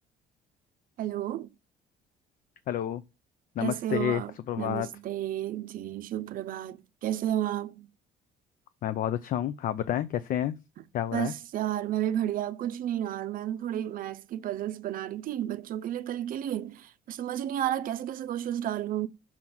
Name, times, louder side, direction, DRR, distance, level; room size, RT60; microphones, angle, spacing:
voice 1, 1.0-1.5 3.6-7.9 11.1-19.1, right 11 dB, 55° right, 0.5 m, -32 dB
voice 2, 2.7-3.0 3.6-4.2 4.5-4.9 8.8-10.6 10.9-11.3, left 11 dB, 55° left, 0.5 m, -29 dB
5.9 x 3.8 x 5.9 m
cardioid pair, 110°, 17 cm